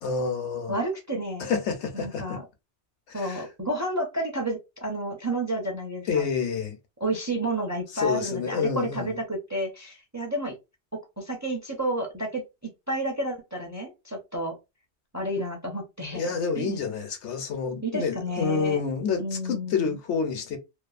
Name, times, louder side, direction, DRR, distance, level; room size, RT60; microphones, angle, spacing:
voice 1, 0.0-0.8 1.4-2.4 3.1-3.4 6.1-6.8 7.9-9.2 16.1-20.6, left 5 dB, 85° left, 1.0 m, -28 dB
voice 2, 0.7-1.5 1.9-2.4 3.1-6.2 7.0-10.5 11.2-12.4 12.9-14.5 15.1-16.3 16.6-16.8 17.8-18.8 19.2-20.0, right 1 dB, 20° right, 0.5 m, -30 dB
2.7 x 2.3 x 2.4 m
omnidirectional pair, 1.1 m